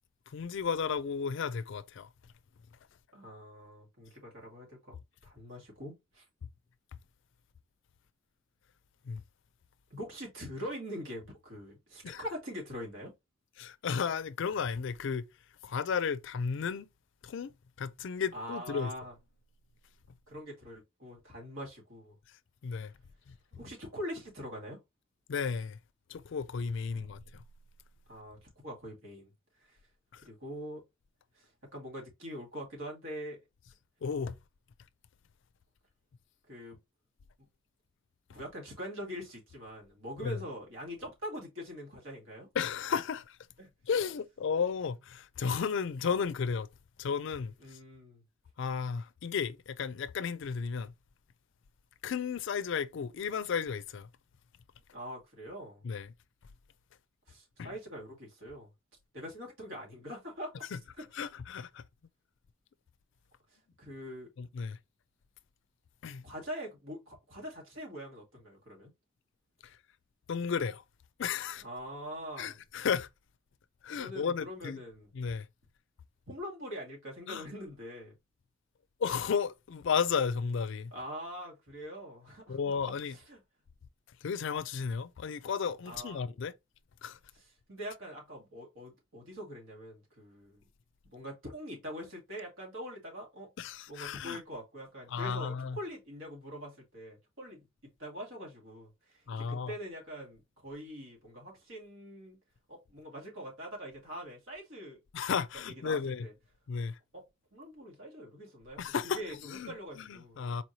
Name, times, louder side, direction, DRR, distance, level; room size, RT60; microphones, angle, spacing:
voice 1, 0.3-2.1 9.0-9.2 12.0-12.2 13.6-15.3 15.6-16.9 17.2-17.5 17.8-18.9 22.3-22.9 23.3-23.4 25.3-25.8 26.1-27.4 30.1-30.2 34.0-34.4 40.2-40.4 42.5-43.4 43.8-46.7 47.0-47.8 48.6-50.9 52.0-54.1 55.8-56.1 57.6-57.7 60.7-60.8 61.1-61.8 64.4-64.8 66.0-66.2 69.6-69.8 70.3-70.8 71.2-71.6 72.4-73.1 73.8-74.8 75.1-75.5 77.3-77.5 79.0-80.9 82.5-83.2 84.2-86.5 87.0-87.2 93.6-94.4 95.1-95.8 99.3-99.7 105.1-106.3 106.7-107.0 108.8-110.6, left 6 dB, 65° left, 0.4 m, -34 dB
voice 2, 3.1-5.0 5.2-6.2 9.9-13.1 18.3-19.1 20.3-22.2 23.5-24.8 26.9-27.1 28.1-29.3 29.6-29.8 30.2-30.8 31.4-33.4 36.5-36.8 38.3-42.5 43.6-43.7 47.6-48.2 54.9-55.8 57.3-58.7 59.1-60.7 61.0-61.1 63.8-64.3 66.2-68.9 71.6-72.5 74.0-75.1 76.3-78.2 80.9-82.6 83.1-83.4 85.9-86.3 87.4-87.5 87.7-90.6 91.1-93.5 93.9-102.4 102.7-105.0 105.7-106.3 107.1-107.3 107.5-108.8 109.1-110.4, equal, 70° right, 1.9 m, -43 dB
4.3 x 3.1 x 2.7 m
head